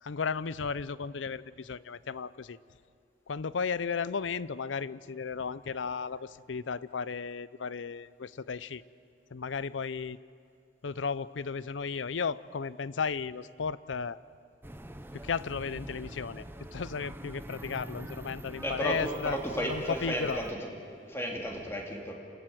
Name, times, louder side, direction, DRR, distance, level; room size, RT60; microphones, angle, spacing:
voice 1, 0.0-2.6 3.3-8.8 9.3-10.2 10.8-14.2 15.1-16.4 16.7-19.4 19.6-20.4, left 5 dB, 90° left, 18 dB, 0.6 m, -34 dB
sound 1, 14.6-20.5, right 1 dB, 10° right, 0.8 m, -44 dB
voice 2, 18.6-20.6 21.1-22.1, equal, 15° left, 0 dB, 2.7 m, -33 dB
28.5 x 15.0 x 9.3 m, 2.5 s
head